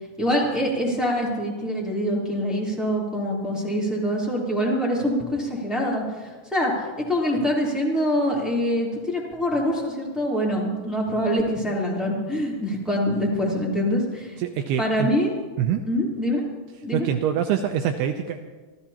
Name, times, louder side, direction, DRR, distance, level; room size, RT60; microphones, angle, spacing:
voice 1, 0.2-6.7 7.1-14.3 14.8-15.3 15.9-16.4 16.8-17.1, equal, ahead, -5 dB, 2.6 m, -24 dB
voice 2, 14.4-15.1 15.6-15.9 16.9-18.4, right 9 dB, 85° right, 5 dB, 2.4 m, -25 dB
27.5 x 13.5 x 2.9 m, 1.3 s
omnidirectional pair, 5.0 m